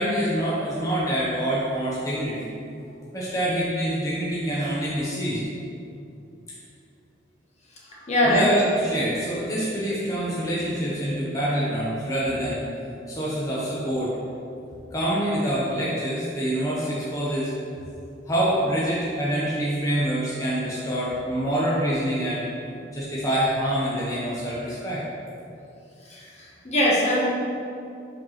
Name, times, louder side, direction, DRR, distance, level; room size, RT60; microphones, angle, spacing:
voice 1, 0.0-2.5 3.1-5.5 7.9-12.6 13.1-14.2 14.9-17.5 18.3-22.4 22.9-25.0, right 1 dB, 20° left, -8 dB, 1.1 m, -26 dB
voice 2, 8.1-8.5 26.1-26.2 26.6-27.2, left 1 dB, 35° left, -5 dB, 1.2 m, -20 dB
5.3 x 4.6 x 5.8 m, 2.6 s
head